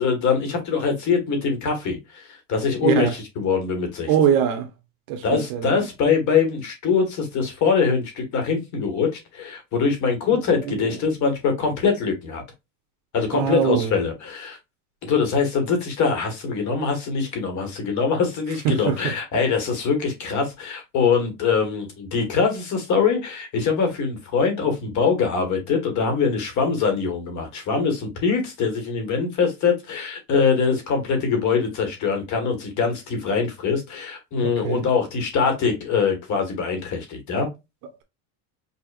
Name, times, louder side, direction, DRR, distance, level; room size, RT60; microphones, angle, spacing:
voice 1, 0.0-4.1 5.2-12.4 13.1-14.6 15.0-37.5, left 5 dB, 45° left, 1.8 m, -23 dB
voice 2, 2.8-3.1 4.1-4.7 5.1-5.8 10.3-10.9 13.3-13.9 18.6-19.1 34.4-34.8, right 8 dB, 55° right, 1.0 m, -23 dB
5.7 x 2.8 x 2.5 m
cardioid pair, 155°, 41 cm